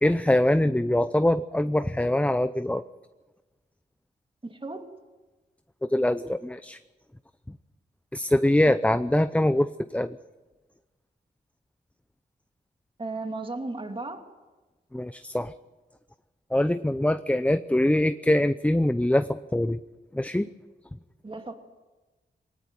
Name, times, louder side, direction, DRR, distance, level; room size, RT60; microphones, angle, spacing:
voice 1, 0.0-2.8 5.8-6.8 7.5-7.6 8.1-10.2 14.9-15.5 16.5-19.8 20.1-20.5, left 1 dB, 5° left, 12 dB, 0.7 m, -23 dB
voice 2, 4.4-4.9 13.0-14.2 21.2-21.5, right 3 dB, 30° right, 5 dB, 2.8 m, -35 dB
19.5 x 19.0 x 9.2 m, 1.2 s
cardioid pair, 60°, 18 cm